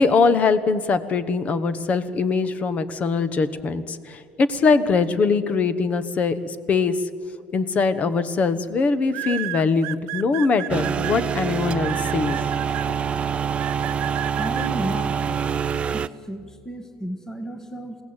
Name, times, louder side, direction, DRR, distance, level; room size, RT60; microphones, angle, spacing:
voice 1, 0.0-7.1 7.5-12.5, left 4 dB, 30° left, 14 dB, 1.2 m, -22 dB
sound 1, 7.6-7.9 9.1-11.1 11.8-12.9 13.6-14.7, right 18 dB, 75° right, 0.6 m, -32 dB
sound 2, 10.7-16.1, right 7 dB, 25° right, 0.5 m, -25 dB
voice 2, 14.3-15.4 15.9-18.0, right 1 dB, 10° left, 7 dB, 1.6 m, -33 dB
28.0 x 17.5 x 8.9 m, 2.1 s
cardioid pair, 165°, 4 cm